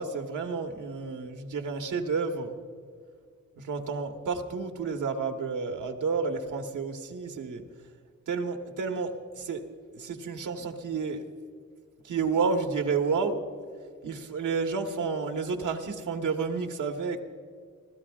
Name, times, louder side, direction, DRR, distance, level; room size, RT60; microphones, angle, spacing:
voice 1, 0.0-2.6 3.6-7.6 8.3-9.6 9.9-11.2 12.0-13.4 14.0-17.2, right 5 dB, 80° right, 5 dB, 1.3 m, -30 dB
29.5 x 13.0 x 2.4 m, 2.1 s
wide cardioid pair, 125°, 30 cm